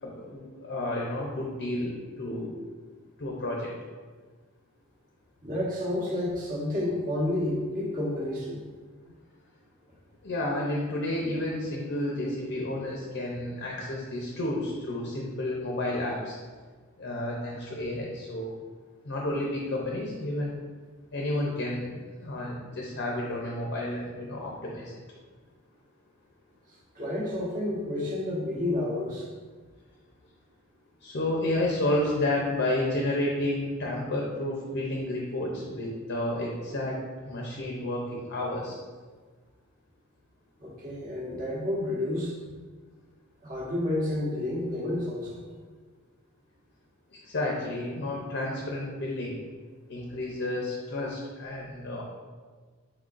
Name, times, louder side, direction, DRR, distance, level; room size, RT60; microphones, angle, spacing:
voice 1, 0.0-2.5 3.2-3.7 10.2-16.4 17.0-18.5 19.0-20.5 21.1-21.9 22.2-24.9 31.0-37.0 37.2-38.8 47.2-49.4 49.9-52.0, left 1 dB, 50° left, -2 dB, 0.6 m, -31 dB
voice 2, 5.4-8.6 26.9-29.3 40.6-42.3 43.4-45.4, left 1 dB, 35° right, -5 dB, 1.0 m, -30 dB
4.8 x 3.8 x 2.5 m, 1.5 s
head